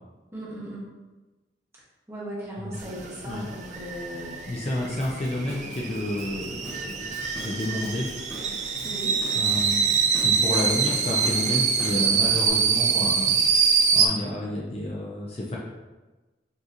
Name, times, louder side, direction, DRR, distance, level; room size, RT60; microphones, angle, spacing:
voice 1, 0.3-0.9 2.1-4.6 8.8-9.2, equal, 15° right, -7 dB, 1.0 m, -37 dB
sound 1, 2.7-14.1, right 6 dB, 40° right, 0.4 m, -25 dB
voice 2, 4.5-8.1 9.3-9.9 10.2-13.4 13.9-15.6, left 1 dB, 35° left, -3 dB, 0.5 m, -30 dB
Drum kit / Drum, 5.0-12.5, left 1 dB, 15° left, 0.8 m, -42 dB
5.3 x 2.9 x 2.5 m, 1.2 s
head